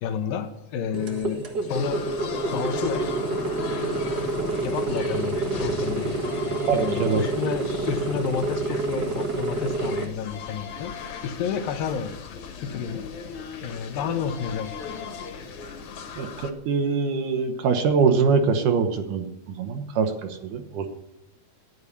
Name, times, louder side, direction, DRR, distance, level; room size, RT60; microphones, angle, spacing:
voice 1, 0.0-2.1 2.5-3.2 4.6-6.2 6.7-10.9 11.2-12.1 12.6-13.1 13.6-14.7, left 7 dB, 75° left, 8 dB, 2.5 m, -30 dB
sound 1, 0.9-10.1, right 2 dB, 55° right, 1.1 m, -28 dB
sound 2, 1.7-16.5, left 6 dB, 55° left, 2.4 m, -38 dB
voice 2, 6.7-7.2 16.2-20.9, right 5 dB, 70° right, 7 dB, 2.3 m, -23 dB
11.0 x 9.5 x 9.9 m, 0.96 s
omnidirectional pair, 4.3 m